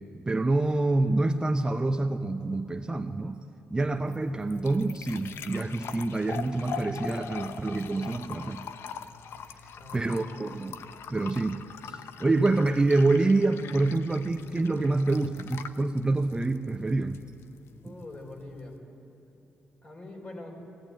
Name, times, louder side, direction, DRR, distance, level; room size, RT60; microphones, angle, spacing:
voice 1, 0.1-3.4 3.7-8.6 9.9-17.2, right 2 dB, 20° right, 6 dB, 0.7 m, -27 dB
sound 1, 3.8-18.8, left 7 dB, 75° left, 0.8 m, -43 dB
voice 2, 9.7-10.6 17.8-18.8 19.8-20.6, left 2 dB, 35° left, 1 dB, 4.6 m, -43 dB
18.5 x 17.0 x 9.0 m, 2.9 s
cardioid pair, 85°, 4 cm